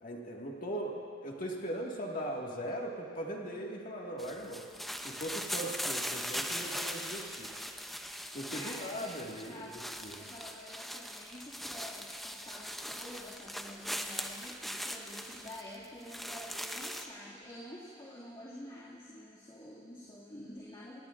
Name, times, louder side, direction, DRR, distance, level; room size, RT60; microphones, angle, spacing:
voice 1, 0.0-4.6 5.0-7.5 8.3-9.7 10.0-10.2, right 1 dB, 45° left, -1 dB, 1.9 m, -39 dB
sound 1, 4.2-17.1, equal, ahead, 0.6 m, -40 dB
voice 2, 8.5-21.1, equal, 25° left, -8 dB, 2.2 m, -48 dB
24.5 x 19.0 x 2.5 m, 2.5 s
head